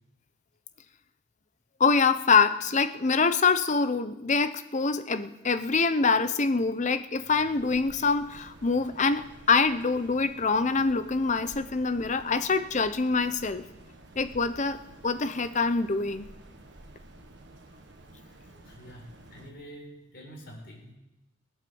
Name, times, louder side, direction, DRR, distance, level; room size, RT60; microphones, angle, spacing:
voice 1, 1.8-13.6 14.2-16.3, left 4 dB, 40° left, 11 dB, 0.8 m, -25 dB
sound 1, 7.3-19.5, right 1 dB, 65° right, 1.6 m, -51 dB
voice 2, 18.2-20.9, equal, 55° left, -2 dB, 4.2 m, -47 dB
19.0 x 9.0 x 7.1 m, 0.94 s
head